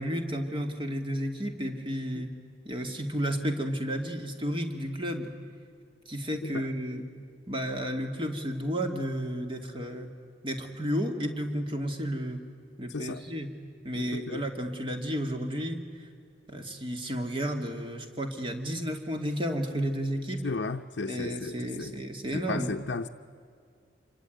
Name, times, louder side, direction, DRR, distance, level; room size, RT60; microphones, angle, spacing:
voice 1, 0.0-2.3 2.6-5.3 6.1-7.0 7.5-10.1 10.4-12.4 12.8-13.5 13.8-16.1 16.5-20.5 21.1-22.7, equal, 30° right, 4 dB, 2.3 m, -32 dB
voice 2, 12.9-13.2 13.9-14.4 20.4-21.9 22.3-23.1, left 3 dB, 70° left, 2 dB, 0.7 m, -34 dB
27.0 x 23.5 x 9.3 m, 2.2 s
head